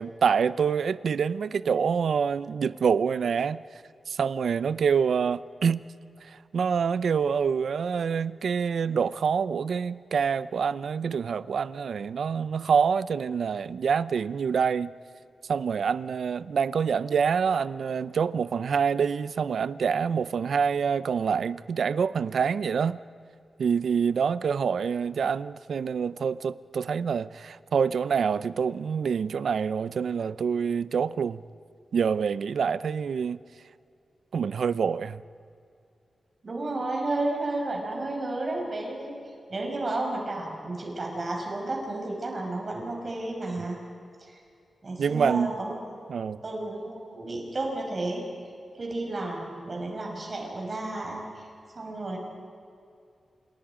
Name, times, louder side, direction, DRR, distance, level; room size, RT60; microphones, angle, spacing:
voice 1, 0.0-3.6 4.1-5.8 6.2-14.9 15.5-23.0 23.6-31.4 31.9-33.4 34.3-35.2 45.0-45.6 46.1-46.4, right 6 dB, 70° right, 0.6 m, -26 dB
voice 2, 36.4-39.1 39.5-43.8 44.2-44.4 44.8-45.7 46.4-48.3 48.8-51.5 51.7-52.2, right 2 dB, 35° right, 5.8 m, -32 dB
29.0 x 27.5 x 5.1 m
wide cardioid pair, 160°, 0 cm